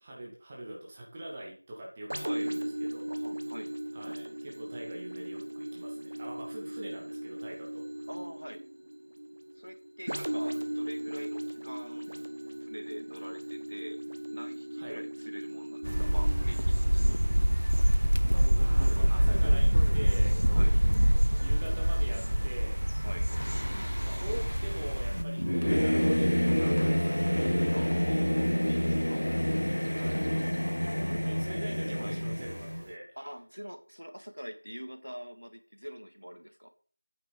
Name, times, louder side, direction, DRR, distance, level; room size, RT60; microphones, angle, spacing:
voice 1, 0.0-3.1 3.9-7.8 14.8-15.0 18.5-20.4 21.4-22.8 24.0-27.5 29.9-30.4 31.2-33.1, right 1 dB, 5° right, -3 dB, 0.6 m, -43 dB
sound 1, 2.1-19.6 20.2-20.3, right 1 dB, 35° right, 1.0 m, -38 dB
voice 2, 2.2-2.6 3.1-3.8 8.1-8.6 9.6-12.1 12.6-14.0 14.3-17.2 20.5-20.8 23.0-23.3 27.7-29.3 31.0-31.5 31.9-32.2 33.2-36.7, equal, 80° right, 8 dB, 1.8 m, -44 dB
sound 2, 15.8-25.2, equal, 60° right, 0.6 m, -25 dB
Singing / Musical instrument, 23.3-32.9, equal, 70° left, 0.6 m, -29 dB
8.8 x 6.4 x 5.1 m, 0.41 s
figure-of-eight pair, 175°, 0 cm